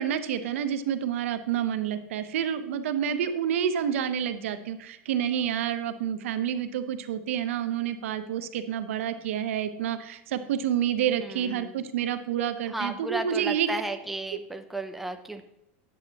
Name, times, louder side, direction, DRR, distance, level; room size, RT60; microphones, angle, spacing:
voice 1, 0.0-13.7, right 9 dB, 90° right, 10 dB, 0.7 m, -28 dB
voice 2, 11.2-11.8 12.7-15.4, right 1 dB, 5° right, 6 dB, 0.5 m, -34 dB
9.2 x 8.5 x 2.9 m, 0.85 s
supercardioid pair, 145°, 7 cm